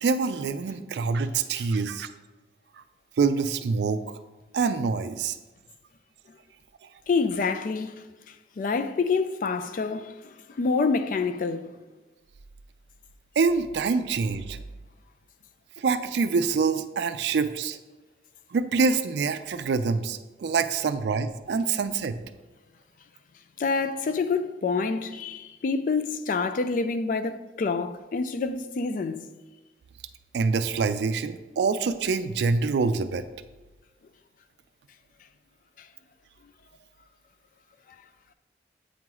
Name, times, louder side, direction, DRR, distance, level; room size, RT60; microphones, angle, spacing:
voice 1, 0.0-2.1 3.2-4.0 4.5-5.4 13.4-14.6 15.8-17.8 18.5-22.2 30.3-33.2, right 4 dB, 70° right, 0.3 m, -25 dB
voice 2, 7.1-11.7 23.6-29.2 35.8-35.9, left 4 dB, 45° left, 0.3 m, -27 dB
8.4 x 3.0 x 3.8 m
head